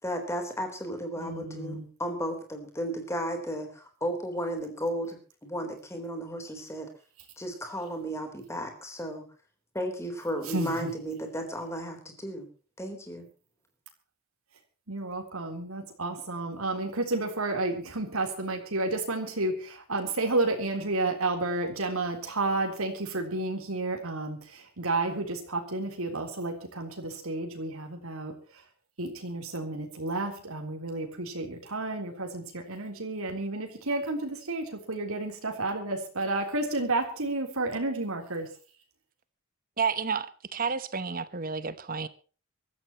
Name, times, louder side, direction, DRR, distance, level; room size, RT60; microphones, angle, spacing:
voice 1, 0.0-6.9 7.4-9.2 9.7-12.5 12.8-13.3, equal, 15° left, 3.7 m, -34 dB
voice 2, 1.2-1.9 10.4-10.9 14.9-28.6 29.0-38.5, right 2 dB, 85° right, 3.6 m, -31 dB
voice 3, 39.8-42.1, right 5 dB, 40° right, 1.0 m, -31 dB
24.0 x 14.0 x 3.0 m
head